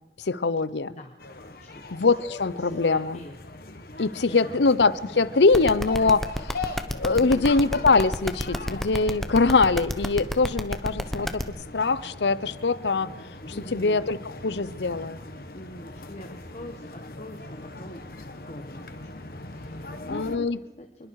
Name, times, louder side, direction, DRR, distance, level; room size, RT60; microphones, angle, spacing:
voice 1, 0.2-1.0 1.9-3.2 4.0-6.2 6.6-11.4 11.7-13.1 13.7-15.2 20.1-20.6, left 3 dB, 80° left, 18 dB, 0.8 m, -23 dB
voice 2, 0.9-1.2 1.5-1.9 2.6-3.7 4.3-4.6 6.0-6.2 7.1-7.6 13.5-14.0 15.5-18.2 18.5-20.5 20.8-21.1, left 1 dB, 40° left, 4 dB, 1.5 m, -43 dB
sound 1, 1.2-20.4, left 2 dB, 55° left, 1.8 m, -41 dB
sound 2, 5.5-11.4, equal, ahead, 1.0 m, -28 dB
26.0 x 21.5 x 4.8 m, 1.1 s
head